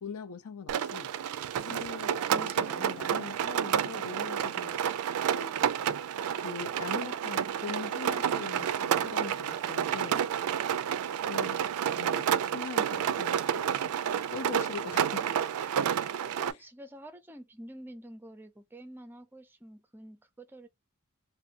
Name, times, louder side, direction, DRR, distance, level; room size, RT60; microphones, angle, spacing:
voice 1, 0.0-1.1 1.7-4.8 5.3-6.0 6.4-10.2 11.2-11.6 11.9-13.9 14.3-15.3 16.5-16.6, left 5 dB, 75° left, 0.5 m, -42 dB
Rain, 0.7-16.5, right 9 dB, 80° right, 0.3 m, -30 dB
voice 2, 2.1-3.1 16.2-20.7, right 1 dB, 10° right, 0.4 m, -48 dB
2.6 x 2.5 x 2.7 m
head